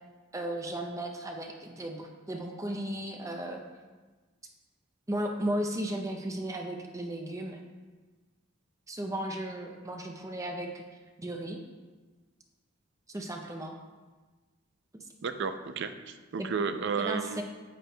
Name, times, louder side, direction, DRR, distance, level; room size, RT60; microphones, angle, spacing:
voice 1, 0.3-3.6 5.1-7.6 8.9-10.8 11.2-11.6 13.1-13.7 16.4-16.5 17.0-17.4, right 1 dB, 15° right, 3 dB, 0.6 m, -35 dB
voice 2, 15.2-17.4, right 5 dB, 60° right, 9 dB, 0.5 m, -32 dB
9.1 x 8.0 x 2.2 m, 1.3 s
head